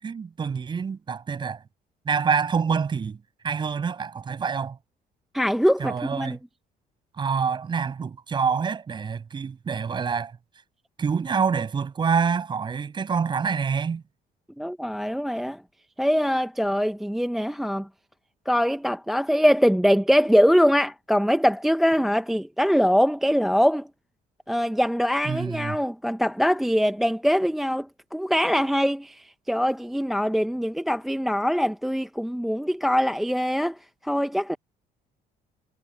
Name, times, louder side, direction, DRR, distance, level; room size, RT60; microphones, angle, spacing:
voice 1, 0.0-1.6 2.0-4.8 5.8-6.4 7.1-10.4 11.0-14.0 25.2-25.8, right 6 dB, 25° right, 6.0 m, -26 dB
voice 2, 5.3-6.4 14.6-15.6 16.0-17.9 18.5-23.9 24.5-33.8 34.0-34.6, equal, ahead, 0.5 m, -23 dB
cardioid pair, 155°, 17 cm